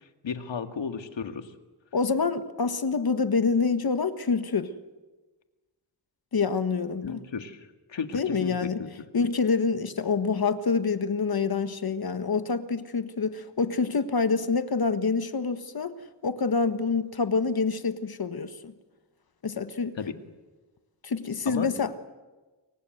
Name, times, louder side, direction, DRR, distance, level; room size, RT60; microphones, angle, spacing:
voice 1, 0.2-1.5 7.0-8.9 20.0-20.1 21.5-21.7, left 6 dB, 90° left, 7 dB, 2.1 m, -34 dB
voice 2, 1.9-4.7 6.3-7.2 8.1-8.8 9.1-15.9 16.2-18.7 19.4-20.0 21.0-21.9, left 4 dB, 55° left, 10 dB, 1.6 m, -26 dB
29.0 x 24.0 x 8.0 m, 1.2 s
wide cardioid pair, 135°, 43 cm